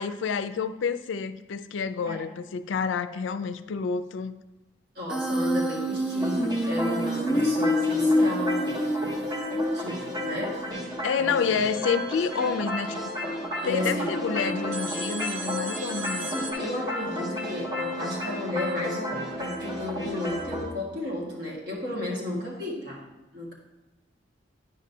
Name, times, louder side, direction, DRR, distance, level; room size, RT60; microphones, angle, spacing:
voice 1, 0.0-4.3 11.0-13.0 13.6-16.3, left 6 dB, 80° left, 11 dB, 0.4 m, -28 dB
voice 2, 4.9-8.7 9.7-11.5 13.6-14.2 14.4-14.6 16.1-23.1 23.3-23.5, left 1 dB, 55° right, -4 dB, 1.6 m, -33 dB
Human voice, 5.1-10.1, left 1 dB, 5° right, 0.5 m, -26 dB
sound 1, 6.2-20.6, equal, 20° right, 1.0 m, -33 dB
sound 2, 11.4-13.7 14.7-16.5, right 3 dB, 75° right, 0.7 m, -39 dB
9.5 x 5.2 x 2.7 m, 1.0 s
head